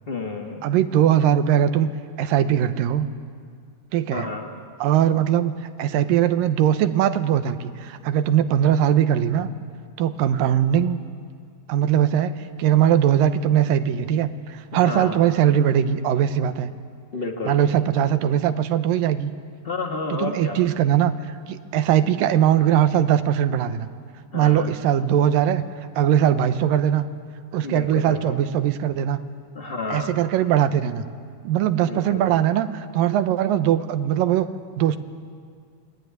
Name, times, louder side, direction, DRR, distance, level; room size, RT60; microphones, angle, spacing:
voice 1, 0.1-0.6 4.1-4.5 14.7-15.2 17.1-17.6 19.6-20.6 24.3-24.7 27.6-28.4 29.5-30.1 31.8-32.3, left 3 dB, 60° left, 2 dB, 0.6 m, -31 dB
voice 2, 0.6-1.9 2.2-3.1 3.9-4.3 4.8-5.5 5.8-9.5 10.0-11.0 11.7-16.7 17.5-19.3 20.1-23.9 24.3-25.6 26.0-27.0 27.5-29.2 29.9-31.1 31.4-34.5 34.8-35.0, right 10 dB, 85° right, 10 dB, 2.7 m, -20 dB
27.0 x 20.0 x 9.4 m, 2.1 s
omnidirectional pair, 3.9 m